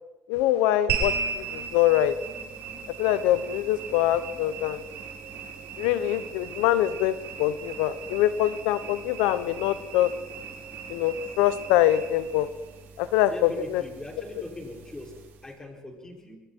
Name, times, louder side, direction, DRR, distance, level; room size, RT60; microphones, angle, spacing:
voice 1, 0.3-2.1 3.0-4.8 5.8-10.1 10.9-12.5 13.0-13.8, left 13 dB, 90° left, 13 dB, 0.8 m, -24 dB
sound 1, 0.9-15.5, right 5 dB, 70° right, 6.9 m, -37 dB
voice 2, 13.3-16.4, left 1 dB, 15° left, 0 dB, 6.0 m, -40 dB
27.0 x 22.5 x 4.5 m, 1.1 s
cardioid pair, 100°, 4 cm